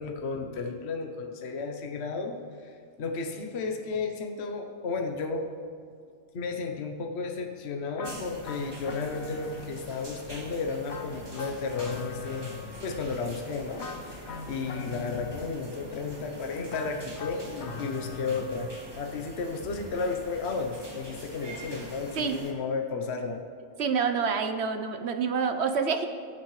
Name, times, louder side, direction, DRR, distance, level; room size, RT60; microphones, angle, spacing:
voice 1, 0.0-2.4 2.6-2.7 3.0-5.5 6.3-12.5 12.8-18.7 18.9-23.4, left 4 dB, 55° left, 3 dB, 1.1 m, -33 dB
sound 1, 8.0-10.0 10.9-13.3 13.8-15.9 16.7-19.1, left 4 dB, 85° left, 1.4 m, -41 dB
sound 2, 8.0-22.5, equal, 20° right, 1.4 m, -44 dB
voice 2, 23.8-26.1, right 5 dB, 55° right, 7 dB, 0.9 m, -27 dB
21.0 x 7.3 x 3.2 m, 2.3 s
omnidirectional pair, 1.4 m